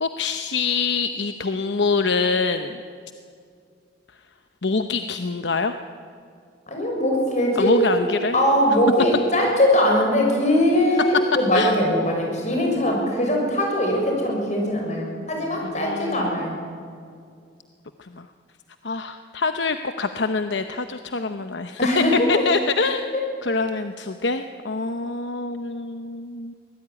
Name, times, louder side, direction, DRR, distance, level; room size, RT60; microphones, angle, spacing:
voice 1, 0.0-2.8 4.6-5.7 7.5-8.4 11.5-11.7 15.6-16.5 18.0-18.3 18.8-23.1 23.4-26.5, left 4 dB, 65° left, 8 dB, 0.9 m, -25 dB
voice 2, 6.7-16.5 21.8-22.3, equal, 40° left, 0 dB, 6.6 m, -21 dB
24.0 x 18.5 x 9.8 m, 2.3 s
head